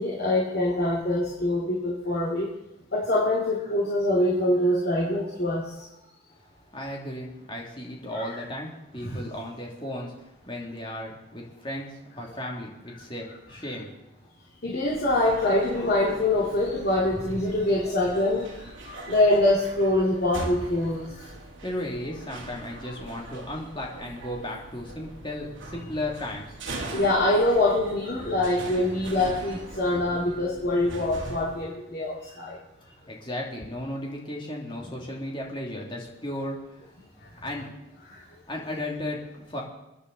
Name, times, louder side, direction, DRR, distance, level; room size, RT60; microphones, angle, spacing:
voice 1, 0.0-2.5 2.9-5.8 8.1-8.4 9.0-9.2 14.6-21.4 26.9-32.6 37.2-37.3 38.1-38.2, left 1 dB, 50° left, -5 dB, 2.7 m, -24 dB
voice 2, 6.4-14.1 21.3-26.6 33.0-37.0 37.4-37.7 38.5-39.6, left 1 dB, 25° left, -1 dB, 2.9 m, -35 dB
sound 1, 14.9-31.6, right 2 dB, 70° right, 2.8 m, -41 dB
28.5 x 9.9 x 4.2 m, 0.91 s
head